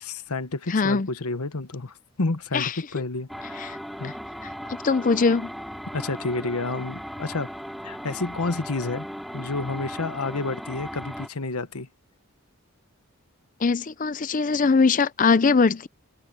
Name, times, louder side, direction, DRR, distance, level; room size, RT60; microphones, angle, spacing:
voice 1, 0.0-4.1 5.9-7.5 7.8-9.1 9.3-11.9, left 3 dB, 85° left, 1.2 m, -30 dB
voice 2, 0.7-1.1 2.5-2.8 3.5-3.8 4.0-4.1 4.7-5.5 13.6-15.9, left 4 dB, 35° left, 0.5 m, -21 dB
sound 1, 3.3-11.3, equal, ahead, 5.5 m, -37 dB
head